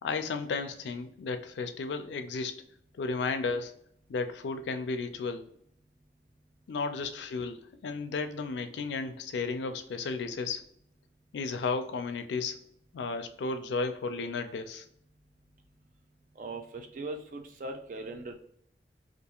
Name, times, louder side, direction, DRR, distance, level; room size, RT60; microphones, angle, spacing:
voice 1, 0.0-2.6 3.0-3.7 4.1-5.5 6.7-10.6 11.3-12.6 12.9-14.9, left 4 dB, 85° left, 8 dB, 0.4 m, -33 dB
voice 2, 16.4-18.3, right 2 dB, 50° right, 5 dB, 0.4 m, -39 dB
2.4 x 2.3 x 2.9 m, 0.68 s
head